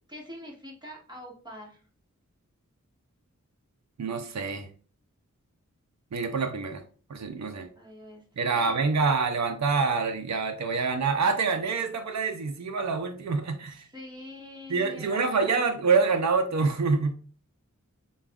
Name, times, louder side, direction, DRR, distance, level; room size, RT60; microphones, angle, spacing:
voice 1, 0.1-1.9 7.7-8.2 8.5-8.8 13.7-15.8, left 1 dB, 15° right, -2 dB, 1.5 m, -44 dB
voice 2, 4.0-4.7 6.1-6.8 7.1-7.7 8.4-13.9 14.7-17.1, right 4 dB, 60° right, 6 dB, 0.6 m, -26 dB
6.9 x 2.3 x 2.3 m, 0.41 s
wide cardioid pair, 55°, 31 cm